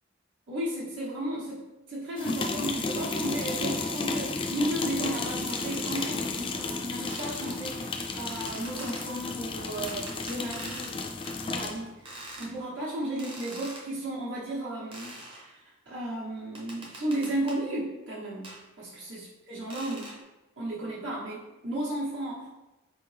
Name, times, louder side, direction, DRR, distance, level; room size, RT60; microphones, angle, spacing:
voice 1, 0.5-11.0 11.4-20.1 20.6-22.5, right 1 dB, 65° right, -8 dB, 1.1 m, -34 dB
sound 1, 2.2-11.8, left 3 dB, 25° left, 0.3 m, -33 dB
sound 2, 5.5-6.1 7.1-7.6 8.3-9.1 9.9-10.9 11.2-11.4 12.1-12.5 13.2-13.9 14.9-15.5 16.6-17.6 18.4-18.6 19.7-20.2, right 1 dB, 25° right, 0.7 m, -44 dB
4.6 x 3.3 x 3.3 m, 1.0 s
head